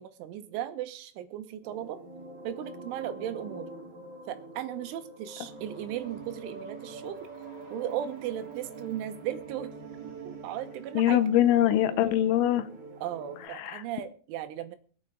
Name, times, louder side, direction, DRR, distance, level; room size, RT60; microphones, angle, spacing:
voice 1, 0.0-2.0 2.4-3.7 4.3-7.3 7.7-9.7 10.2-11.2 13.0-14.8, right 11 dB, 85° right, 9 dB, 3.5 m, -36 dB
sound 1, 1.6-13.5, right 3 dB, 40° right, 1.6 m, -44 dB
voice 2, 11.0-12.7 13.6-13.8, left 12 dB, 85° left, 12 dB, 3.3 m, -23 dB
23.5 x 8.9 x 3.7 m, 0.42 s
omnidirectional pair, 5.4 m